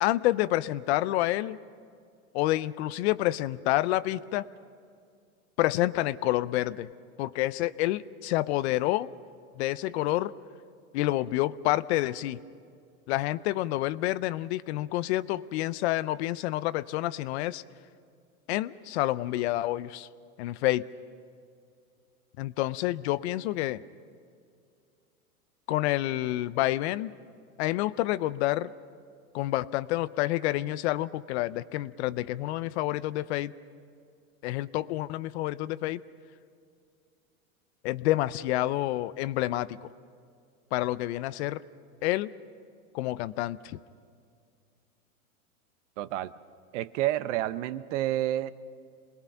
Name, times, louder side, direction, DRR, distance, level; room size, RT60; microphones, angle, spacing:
voice 1, 0.0-1.6 2.3-4.4 5.6-6.9 7.2-9.1 9.6-10.3 10.9-12.4 13.1-17.6 18.5-20.1 20.4-20.8 22.4-23.8 25.7-27.1 27.6-28.7 29.3-33.5 34.4-36.0 37.8-39.9 40.7-41.6 42.0-42.3 42.9-43.8, left 16 dB, 50° left, 17 dB, 0.6 m, -28 dB
voice 2, 46.0-46.3 46.7-48.5, right 14 dB, 55° right, 15 dB, 0.8 m, -29 dB
27.5 x 21.0 x 5.7 m, 2.3 s
hypercardioid pair, 130°, 43 cm